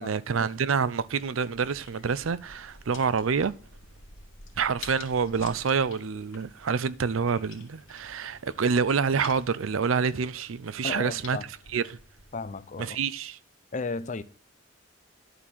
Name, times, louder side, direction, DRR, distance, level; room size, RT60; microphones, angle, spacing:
voice 1, 0.0-3.5 4.6-11.4 11.7-12.0 12.8-13.4, right 5 dB, 85° right, 0.5 m, -27 dB
sound 1, 0.8-12.9, left 4 dB, 85° left, 2.2 m, -50 dB
voice 2, 10.8-11.4 12.3-13.0 13.7-14.2, left 4 dB, 40° left, 0.5 m, -34 dB
11.0 x 4.3 x 7.3 m
head